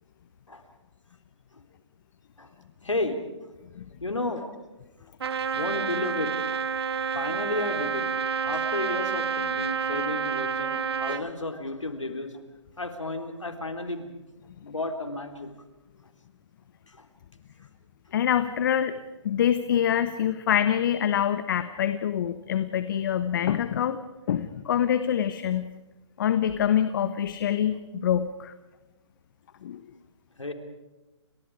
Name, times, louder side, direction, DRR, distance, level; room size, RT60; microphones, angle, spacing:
voice 1, 2.8-3.2 4.0-4.5 5.5-6.6 7.1-8.1 8.5-12.3 12.8-14.1 14.6-15.5 17.0-17.1 30.4-30.5, left 2 dB, 85° left, 6 dB, 3.9 m, -32 dB
Trumpet, 5.2-11.3, right 6 dB, 55° right, 1.0 m, -29 dB
voice 2, 18.1-18.9 19.2-24.0 24.3-25.7 26.2-28.5 29.6-29.8, left 9 dB, 45° left, 11 dB, 1.3 m, -25 dB
30.0 x 27.0 x 4.9 m, 1.1 s
figure-of-eight pair, 135°, 16 cm